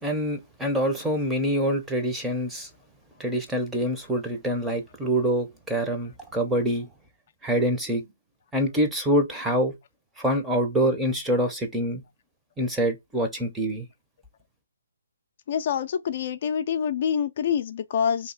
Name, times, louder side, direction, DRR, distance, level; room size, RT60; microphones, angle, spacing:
voice 1, 0.0-2.7 3.2-6.9 7.4-8.0 8.5-9.7 10.2-12.0 12.6-13.9, equal, 5° right, 0.6 m, -25 dB
voice 2, 15.5-18.3, left 8 dB, 45° left, 0.4 m, -26 dB
2.8 x 2.6 x 3.8 m
figure-of-eight pair, 145°, 0 cm